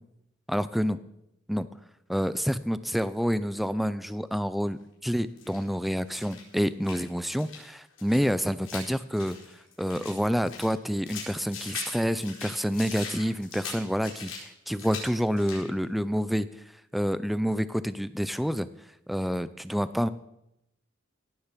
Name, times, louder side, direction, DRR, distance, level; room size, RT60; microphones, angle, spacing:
voice 1, 0.5-1.0 1.5-1.7 2.1-9.4 9.8-16.5 16.9-18.7 19.1-20.1, equal, ahead, 14 dB, 0.4 m, -28 dB
sound 1, 5.4-5.7 6.1-7.1 7.4-7.6 8.0-10.2 10.5-12.0 12.2-14.4 14.7-15.1 15.3-15.7, left 5 dB, 75° left, 4.4 m, -41 dB
16.5 x 7.1 x 7.4 m, 0.82 s
head